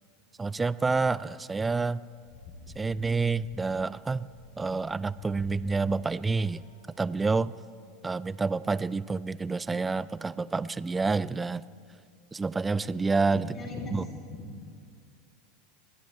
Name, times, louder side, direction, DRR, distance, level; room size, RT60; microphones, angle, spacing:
voice 1, 0.4-2.0 2.8-4.3 4.6-6.6 7.0-7.5 8.0-11.6 12.3-13.5 13.9-14.0, right 4 dB, 15° right, 18 dB, 0.4 m, -28 dB
sound 1, 2.0-7.1, left 2 dB, 70° left, 4.0 m, -53 dB
voice 2, 13.3-14.4, left 2 dB, 40° left, -2 dB, 4.2 m, -38 dB
28.0 x 11.5 x 4.4 m, 2.2 s
hypercardioid pair, 85°, 0 cm